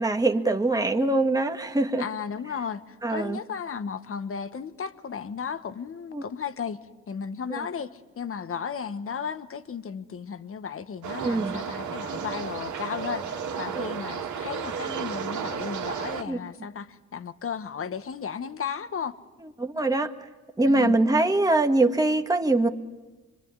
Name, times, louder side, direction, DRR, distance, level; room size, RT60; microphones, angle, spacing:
voice 1, 0.0-2.1 3.0-3.4 6.1-6.2 7.6-7.7 11.2-11.6 13.7-13.8 16.3-16.4 19.6-20.1 20.6-22.7, right 2 dB, 10° right, 1.8 m, -23 dB
voice 2, 2.0-19.2 20.7-21.0, left 6 dB, 45° left, 1.4 m, -34 dB
sound 1, 11.0-16.2, right 7 dB, 65° right, 2.5 m, -33 dB
25.0 x 24.0 x 9.7 m
cardioid pair, 75°, 31 cm